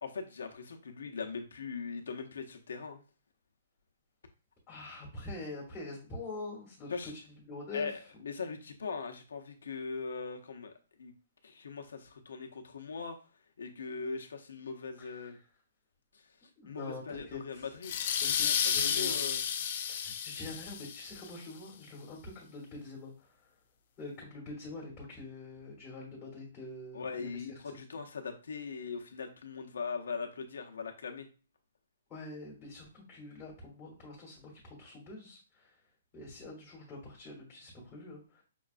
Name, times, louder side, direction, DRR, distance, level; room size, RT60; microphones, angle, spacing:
voice 1, 0.0-3.0 6.9-7.1 7.7-10.7 11.0-11.1 11.4-13.2 13.6-15.4 16.1-16.2 16.7-17.9 18.3-18.6 18.8-19.4 26.9-31.3, left 5 dB, 80° left, 4 dB, 0.7 m, -40 dB
voice 2, 4.7-7.2 7.5-8.0 15.0-15.3 16.6-17.7 18.2-19.4 19.9-23.3 24.0-27.6 32.1-35.7 36.1-38.4, left 2 dB, 15° left, -5 dB, 1.1 m, -45 dB
sound 1, 17.8-21.3, left 8 dB, 35° left, 0.3 m, -32 dB
5.7 x 2.3 x 2.5 m, 0.36 s
hypercardioid pair, 175°, 0 cm